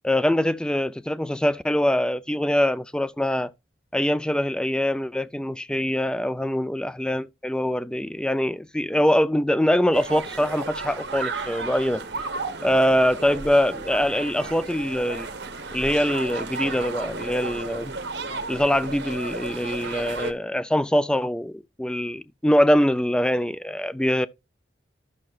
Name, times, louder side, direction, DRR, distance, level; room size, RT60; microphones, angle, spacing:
voice 1, 0.0-3.5 3.9-12.0 12.6-15.3 15.7-18.0 18.5-24.3, left 1 dB, 5° left, 0.3 m, -23 dB
sound 1, 9.9-20.3, right 3 dB, 75° right, 1.0 m, -33 dB
13.5 x 6.1 x 2.3 m
head